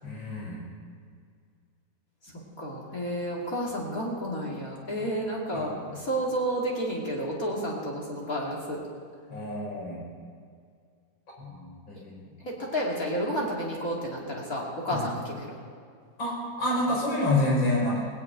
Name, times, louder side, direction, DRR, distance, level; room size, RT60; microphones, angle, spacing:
voice 1, 0.0-0.6 5.5-6.0 9.3-10.0 11.4-12.3 14.9-15.0 16.2-18.0, left 1 dB, 85° left, -3 dB, 6.0 m, -28 dB
voice 2, 2.6-8.8 12.4-15.5, equal, 50° left, -4 dB, 2.8 m, -31 dB
18.5 x 8.4 x 9.0 m, 2.1 s
omnidirectional pair, 2.0 m